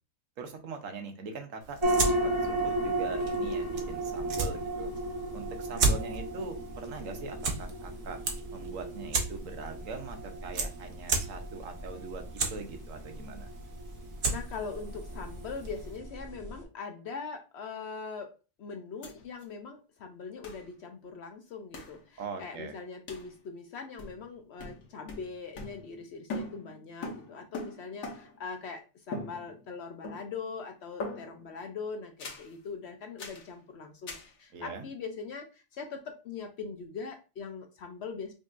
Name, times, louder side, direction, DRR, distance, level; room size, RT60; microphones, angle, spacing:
voice 1, 0.4-4.9 5.3-8.2 8.5-12.2 12.5-13.5 22.2-22.7 34.5-34.9, right 4 dB, 70° right, 6 dB, 1.1 m, -42 dB
sound 1, 1.6-16.0, right 3 dB, 50° right, 0.8 m, -36 dB
sound 2, 1.8-16.6, right 1 dB, 25° right, 1.1 m, -35 dB
voice 2, 14.3-38.3, left 5 dB, 65° left, 5 dB, 0.7 m, -41 dB
sound 3, 19.0-19.1 19.4-19.5 20.4-20.7 21.7-22.0 23.1-23.3 24.0-24.3 24.6-26.0 26.3-28.5 29.1-29.8 30.0-30.5 31.0-31.5 32.2-32.5 33.2-33.5 34.1-34.3, left 2 dB, 80° left, 1.3 m, -41 dB
5.1 x 2.7 x 2.4 m, 0.32 s
omnidirectional pair, 1.4 m